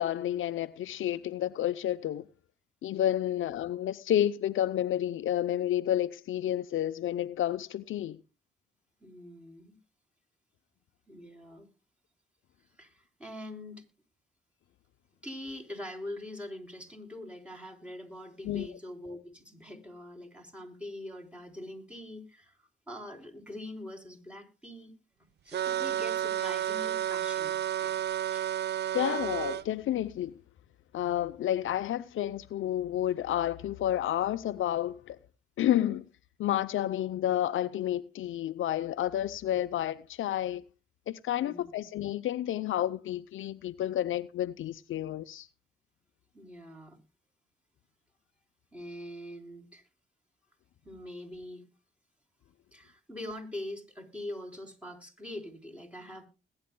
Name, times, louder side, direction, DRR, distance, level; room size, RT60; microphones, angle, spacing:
voice 1, 0.0-2.2 2.8-8.2 18.4-18.7 28.9-30.3 30.9-35.2 35.6-36.1 36.4-40.6 41.1-45.5, left 12 dB, 70° left, 0.6 m, -30 dB
voice 2, 9.0-9.8 11.1-11.7 12.8-13.8 15.2-22.6 22.9-27.5 27.8-28.0 28.3-28.4 41.4-41.8 46.3-47.0 48.7-49.8 50.8-51.7 52.7-56.3, left 1 dB, 5° right, 3.7 m, -43 dB
sound 1, 25.5-29.6, right 11 dB, 55° right, 0.5 m, -31 dB
21.0 x 9.6 x 2.2 m
cardioid pair, 70°, 21 cm